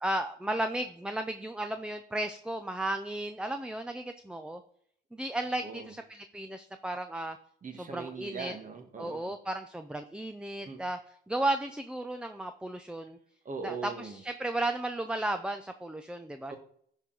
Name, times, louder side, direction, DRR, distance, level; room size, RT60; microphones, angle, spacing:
voice 1, 0.0-4.6 5.1-7.4 7.9-8.5 9.0-11.0 11.3-13.2 13.6-16.5, right 1 dB, 5° right, 8 dB, 0.5 m, -34 dB
voice 2, 5.6-5.9 7.6-9.4 10.6-10.8 13.4-14.2 16.5-16.6, right 5 dB, 40° right, 5 dB, 1.5 m, -40 dB
10.5 x 4.4 x 3.9 m, 0.64 s
cardioid pair, 90°, 20 cm